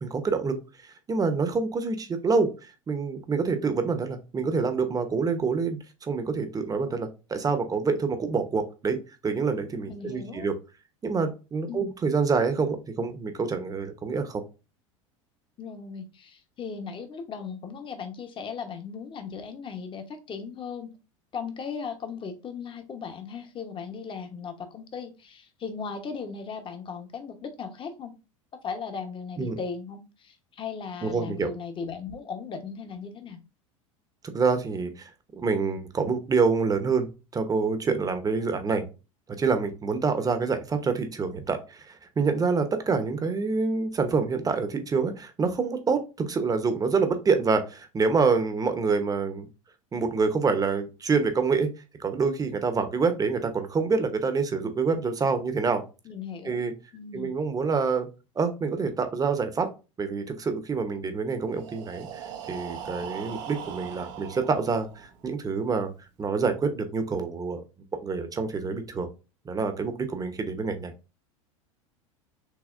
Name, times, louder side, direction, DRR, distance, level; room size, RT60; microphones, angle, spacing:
voice 1, 0.0-9.0 9.2-10.5 11.0-14.4 29.4-29.6 31.0-31.5 34.3-38.9 39.4-49.5 49.9-51.7 52.0-55.8 56.4-56.7 57.1-58.1 58.4-59.7 60.0-65.9 66.2-67.6 68.0-69.1 69.4-70.9, right 4 dB, 20° right, 8 dB, 0.9 m, -27 dB
voice 2, 9.9-10.5 11.7-11.8 15.6-20.9 21.3-28.1 28.6-33.4 56.0-56.6 56.9-57.3, left 6 dB, 30° left, 6 dB, 1.0 m, -37 dB
Breathing, 61.4-65.3, right 8 dB, 65° right, 0.8 m, -40 dB
6.4 x 2.8 x 2.5 m, 0.30 s
hypercardioid pair, 95°, 17 cm